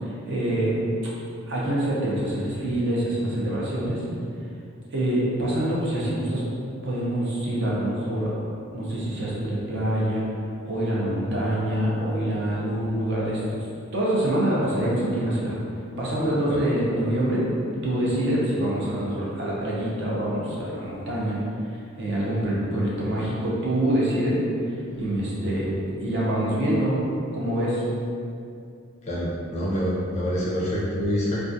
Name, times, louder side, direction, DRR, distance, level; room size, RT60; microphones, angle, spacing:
voice 1, 0.2-0.7 1.5-4.0 4.9-6.4 6.8-8.3 8.7-10.3 10.7-13.7 13.9-15.5 16.0-17.4 17.8-21.4 22.0-24.4 25.0-25.7 26.0-26.9 27.3-27.8, right 1 dB, 55° right, -6 dB, 0.6 m, -25 dB
voice 2, 29.1-31.4, equal, 30° left, -6 dB, 0.4 m, -26 dB
2.3 x 2.3 x 2.6 m, 2.4 s
head